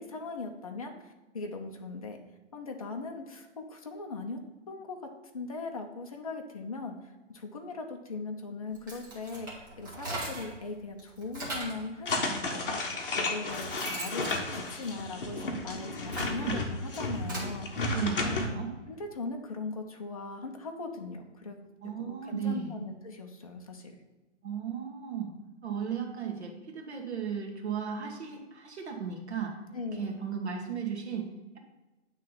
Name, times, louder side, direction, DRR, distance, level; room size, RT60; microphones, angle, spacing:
voice 1, 0.0-2.2 2.5-4.4 4.7-5.0 5.3-17.9 18.2-21.6 21.8-23.9 29.7-30.1, left 3 dB, 30° left, 2 dB, 0.6 m, -39 dB
sound 1, 8.7-10.6 11.0-11.9 12.7-12.8 13.2-15.4 15.9-17.5, right 1 dB, 15° right, 1.0 m, -40 dB
sound 2, 12.1-18.5, left 2 dB, 45° left, 1.1 m, -33 dB
voice 2, 17.9-18.7 21.8-22.7 24.4-25.3 25.6-29.5 29.9-31.3, right 7 dB, 65° right, 2 dB, 1.5 m, -35 dB
8.7 x 3.3 x 5.5 m, 1.1 s
hypercardioid pair, 175°, 36 cm